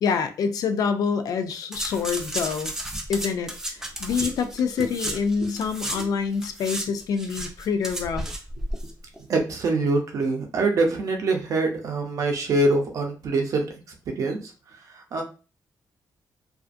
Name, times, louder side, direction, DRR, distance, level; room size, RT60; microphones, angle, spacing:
voice 1, 0.0-2.7 3.1-3.5 4.0-8.3, left 6 dB, 65° left, 0.3 m, -26 dB
sound 1, 1.7-6.1 6.3-8.9 9.2-9.3, right 1 dB, 5° right, 0.4 m, -33 dB
voice 2, 9.3-13.7 14.2-14.5 14.9-15.2, right 2 dB, 55° right, 0.6 m, -24 dB
2.4 x 2.4 x 2.4 m
wide cardioid pair, 165°, 7 cm